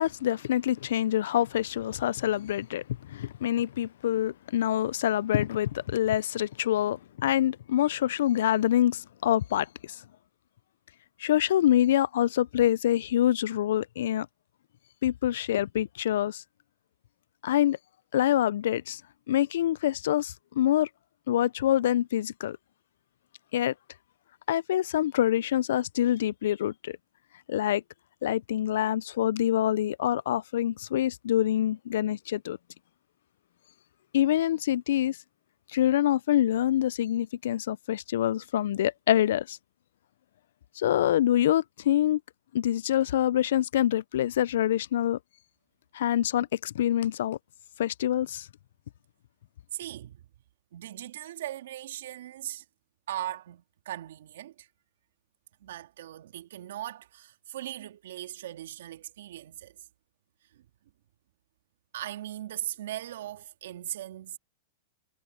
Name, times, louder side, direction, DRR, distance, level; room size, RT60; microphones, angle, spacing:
voice 1, 0.0-2.8 3.1-9.7 11.2-14.3 15.0-16.4 17.4-17.8 18.1-19.0 19.3-20.9 21.3-22.6 23.5-23.7 24.5-27.0 27.5-27.8 28.2-32.6 34.1-35.2 35.7-39.6 40.8-42.2 42.5-45.2 45.9-47.4 47.8-48.5, left 12 dB, 75° left, 0.4 m, -26 dB
voice 2, 49.7-50.2 50.7-52.6 53.1-54.7 55.6-59.8 60.5-60.7 61.9-64.4, right 13 dB, 75° right, 2.6 m, -39 dB
hypercardioid pair, 125°, 0 cm